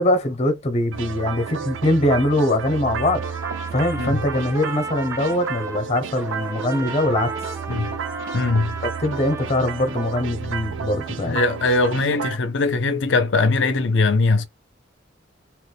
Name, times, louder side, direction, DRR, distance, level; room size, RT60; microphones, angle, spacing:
voice 1, 0.0-3.2 3.7-7.3 9.0-11.4, left 1 dB, 35° left, 0.7 m, -22 dB
sound 1, 0.9-12.4, right 6 dB, 80° right, 0.4 m, -32 dB
Trumpet, 2.9-5.8 6.1-10.3, right 3 dB, 15° right, 0.4 m, -35 dB
voice 2, 8.3-8.7 11.2-14.5, left 3 dB, 70° left, 0.6 m, -20 dB
3.0 x 2.1 x 3.3 m
head